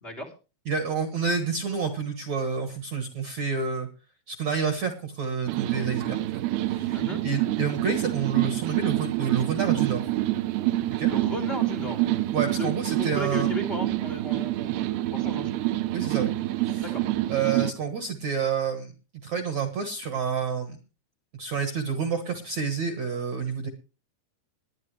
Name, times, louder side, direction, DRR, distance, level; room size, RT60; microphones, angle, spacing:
voice 1, 0.0-0.3 6.9-7.2 11.0-12.1 12.6-12.7 13.0-15.5 16.8-17.0, left 1 dB, 75° left, 3 dB, 0.5 m, -35 dB
voice 2, 0.7-3.9 4.3-10.0 11.0-11.1 12.3-13.5 15.9-16.3 16.6-16.9 17.3-18.9 19.2-20.8 21.3-23.7, right 6 dB, 65° right, 6 dB, 1.8 m, -29 dB
sound 1, 5.5-17.7, right 16 dB, 80° right, 2.2 m, -27 dB
20.0 x 10.5 x 3.3 m, 0.32 s
omnidirectional pair, 5.2 m